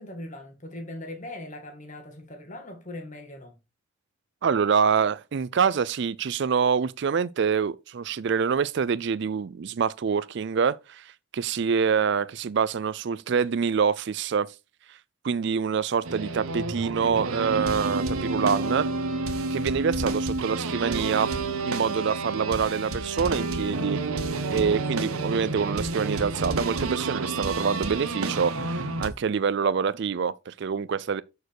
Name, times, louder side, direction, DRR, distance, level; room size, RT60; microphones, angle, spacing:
voice 1, 0.0-3.6, left 1 dB, 35° left, 1.9 m, -40 dB
voice 2, 4.4-14.5 15.2-18.9 19.5-21.4 21.6-24.0 24.5-31.2, right 6 dB, 50° right, 0.4 m, -26 dB
sound 1, 16.0-29.1, right 3 dB, 85° right, 1.2 m, -29 dB
6.8 x 6.7 x 4.6 m
head